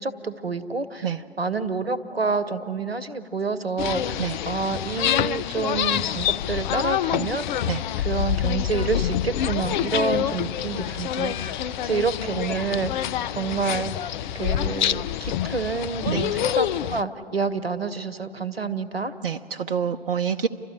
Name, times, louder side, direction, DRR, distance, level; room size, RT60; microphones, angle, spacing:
voice 1, 0.0-1.1 1.4-7.7 8.0-19.1, right 4 dB, 90° right, 14 dB, 1.0 m, -28 dB
sound 1, 3.8-17.0, left 11 dB, 55° left, 0.5 m, -26 dB
voice 2, 19.2-20.5, right 7 dB, 65° right, 6 dB, 0.7 m, -27 dB
30.0 x 13.0 x 9.7 m, 2.7 s
figure-of-eight pair, 100°, 29 cm